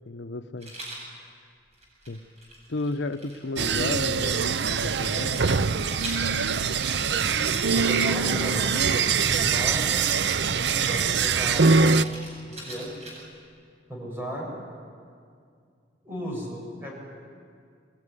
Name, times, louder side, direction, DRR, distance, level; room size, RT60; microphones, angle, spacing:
voice 1, 0.1-0.7 1.1-1.3 2.1-2.2 2.7-5.4, left 2 dB, 85° left, 10 dB, 0.8 m, -33 dB
Rattle, 0.6-1.1 1.7-4.4 5.3-9.3 10.0-13.4, right 1 dB, 40° right, 7.6 m, -44 dB
sound 1, 3.6-12.0, right 5 dB, 75° right, 0.6 m, -23 dB
voice 2, 7.7-9.9 10.7-12.9 13.9-14.5 16.0-16.9, equal, 15° right, -3 dB, 7.5 m, -34 dB
24.0 x 20.5 x 9.9 m, 2.2 s
head